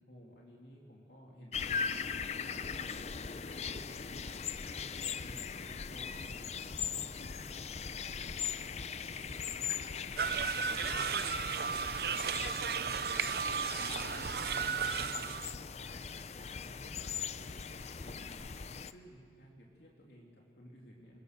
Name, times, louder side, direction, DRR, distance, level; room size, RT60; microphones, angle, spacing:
voice 1, 0.0-2.1 2.5-4.9 5.2-8.5 9.0-13.2 13.6-16.1 16.6-18.4 18.8-21.2, equal, 65° left, -2 dB, 2.9 m, -56 dB
sound 1, 1.5-18.9, left 6 dB, 35° left, 0.6 m, -40 dB
sound 2, 10.2-15.5, right 6 dB, 55° right, 0.6 m, -34 dB
27.5 x 22.5 x 6.7 m, 2.4 s
head